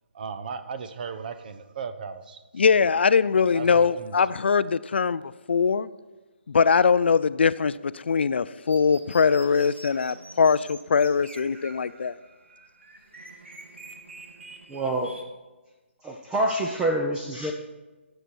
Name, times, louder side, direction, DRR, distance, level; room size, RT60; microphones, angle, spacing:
voice 1, 0.1-2.4 2.7-2.9 3.5-4.2, right 6 dB, 45° right, 0.9 m, -36 dB
voice 2, 2.5-5.2 5.5-5.9 6.5-12.1, left 5 dB, 60° left, 0.4 m, -22 dB
sound 1, 8.7-15.2, right 2 dB, 70° right, 1.9 m, -46 dB
voice 3, 14.7-15.2 16.0-17.5, right 1 dB, 10° right, 0.6 m, -26 dB
16.0 x 6.8 x 4.5 m
figure-of-eight pair, 140°, 7 cm